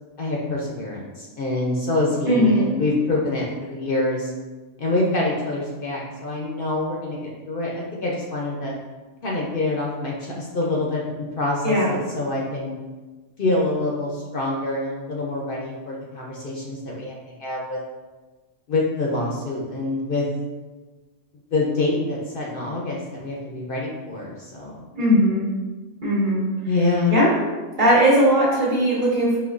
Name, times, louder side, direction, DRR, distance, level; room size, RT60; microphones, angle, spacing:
voice 1, 0.2-4.3 4.8-8.7 9.2-12.7 13.4-17.8 18.7-20.2 21.5-24.8 26.7-27.1, left 2 dB, 55° left, -3 dB, 0.7 m, -26 dB
voice 2, 2.3-2.7 11.6-11.9 24.9-25.4 26.0-26.4 27.1-27.3 27.8-29.4, equal, 40° right, -8 dB, 1.1 m, -18 dB
5.0 x 3.1 x 2.5 m, 1.3 s
omnidirectional pair, 1.3 m